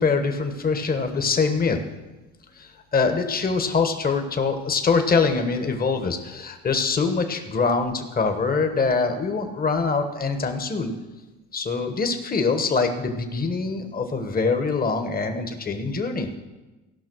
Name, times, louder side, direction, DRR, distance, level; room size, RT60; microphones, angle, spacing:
voice 1, 0.0-1.8 2.5-10.9 11.5-16.3, left 4 dB, 30° left, 6 dB, 1.3 m, -24 dB
15.5 x 5.7 x 6.2 m, 1.1 s
cardioid pair, 90°, 31 cm